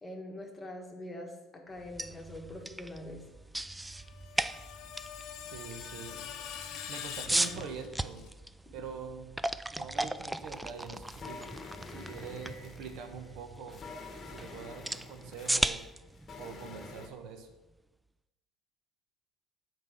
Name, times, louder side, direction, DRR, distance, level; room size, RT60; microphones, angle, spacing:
voice 1, 0.0-3.2, left 1 dB, 20° left, 2 dB, 1.7 m, -44 dB
sound 1, 1.8-17.7, right 1 dB, 10° right, 0.3 m, -38 dB
Screech, 4.0-8.3, left 9 dB, 65° left, 1.0 m, -43 dB
voice 2, 5.4-6.2 6.9-8.3 8.7-9.4 9.7-11.4 11.9-13.8 14.3-15.8 16.4-17.5, right 5 dB, 70° right, 6 dB, 1.2 m, -44 dB
sound 2, 10.4-17.1, left 4 dB, 35° left, 1.3 m, -48 dB
8.4 x 4.5 x 6.6 m, 1.0 s
supercardioid pair, 100°, 0 cm